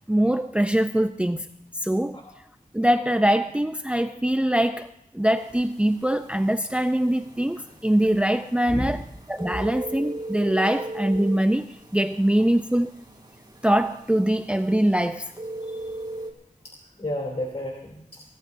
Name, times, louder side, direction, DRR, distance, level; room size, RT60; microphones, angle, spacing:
voice 1, 0.1-1.5 1.7-2.2 2.7-9.0 9.3-13.0 13.6-15.3, right 1 dB, 10° right, 0.5 m, -23 dB
sound 1, 5.3-16.3, right 1 dB, 30° right, 3.1 m, -39 dB
voice 2, 8.7-9.0 9.5-9.7 16.6-18.2, left 1 dB, 45° left, 3.0 m, -32 dB
24.5 x 17.0 x 2.7 m
wide cardioid pair, 65°, 15 cm